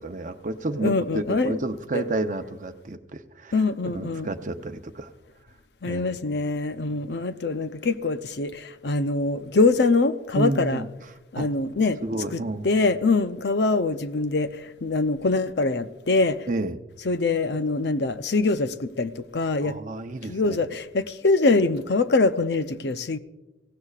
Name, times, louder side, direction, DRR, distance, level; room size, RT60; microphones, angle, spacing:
voice 1, 0.0-3.6 3.9-5.1 5.8-6.1 6.8-7.0 10.3-10.9 11.4-11.5 12.0-12.7 16.5-16.8 19.6-20.6, right 2 dB, 45° right, 8 dB, 0.7 m, -30 dB
voice 2, 0.8-1.6 1.9-2.0 3.5-4.3 5.8-10.8 11.3-12.0 12.3-16.5 17.0-19.8 20.3-23.2, left 3 dB, 65° left, 10 dB, 0.7 m, -24 dB
23.0 x 17.0 x 2.4 m, 1.0 s
head